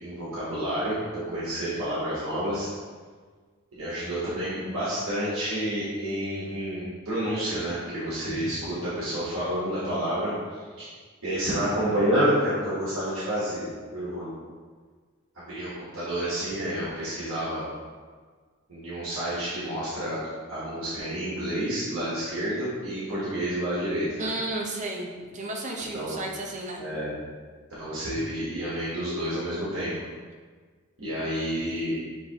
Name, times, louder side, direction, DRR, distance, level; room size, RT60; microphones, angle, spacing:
voice 1, 0.0-2.7 3.8-10.9 11.2-14.4 15.3-17.6 18.7-20.2 20.5-24.3 25.9-26.2 26.8-27.1 27.8-30.1 31.0-32.0, equal, 80° right, -9 dB, 1.2 m, -29 dB
voice 2, 24.2-26.8, right 2 dB, 35° right, 0 dB, 0.7 m, -33 dB
6.7 x 2.7 x 2.8 m, 1.5 s
head